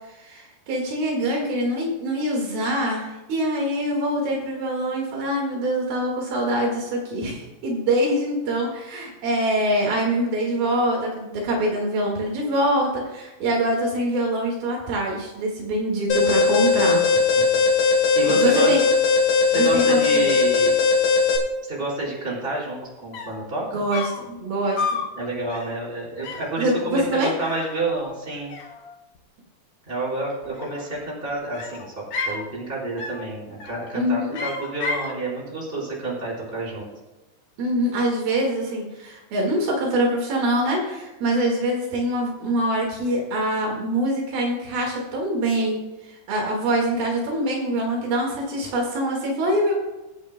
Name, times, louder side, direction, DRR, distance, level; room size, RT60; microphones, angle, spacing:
voice 1, 0.1-17.0 18.2-18.8 19.5-20.3 23.7-24.8 26.6-27.3 33.9-34.4 37.6-49.7, right 1 dB, 75° right, -1 dB, 3.7 m, -24 dB
Alarm, 16.1-21.4, left 5 dB, 55° left, 3.4 m, -19 dB
voice 2, 17.5-18.8 19.5-20.8 21.6-23.8 25.2-28.5 29.9-36.9, right 2 dB, 15° right, -6 dB, 4.3 m, -29 dB
sound 1, 22.8-22.9 23.1-23.5 23.9-24.3 24.8-25.1 25.5-25.8 26.2-26.6 27.4-28.2 28.5-29.2 30.4-31.1 31.5-32.5 33.0-33.3 33.6-34.0 34.3-35.2, left 4 dB, 75° left, 1.3 m, -32 dB
24.5 x 8.4 x 2.2 m, 1.1 s
omnidirectional pair, 4.4 m